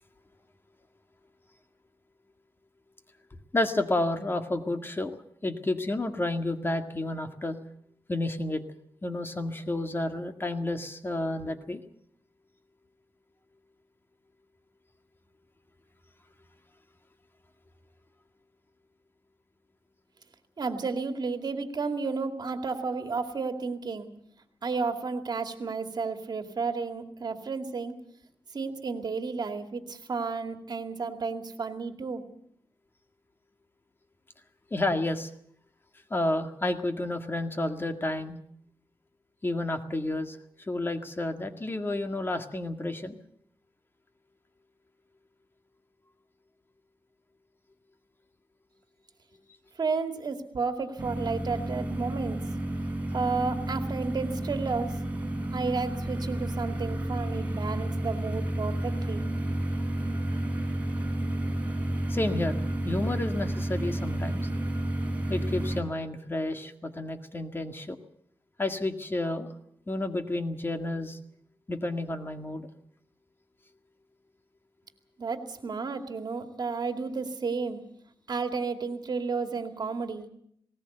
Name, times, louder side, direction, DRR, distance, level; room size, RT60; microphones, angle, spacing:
voice 1, 3.5-5.2 5.4-7.6 8.1-8.6 9.0-11.8 34.7-35.3 36.1-38.4 39.4-40.4 40.7-43.2 62.1-64.5 65.3-68.0 68.6-69.5 69.9-71.2 71.7-72.7, left 2 dB, 25° left, 6 dB, 1.9 m, -30 dB
voice 2, 20.6-24.1 24.6-27.9 28.5-32.2 49.8-52.4 53.1-55.0 55.5-59.3 75.2-77.8 78.3-80.3, right 4 dB, 55° right, 6 dB, 2.3 m, -32 dB
sound 1, 51.0-65.8, right 1 dB, 20° right, 4.4 m, -31 dB
19.5 x 19.0 x 7.9 m, 0.69 s
wide cardioid pair, 95°, 8 cm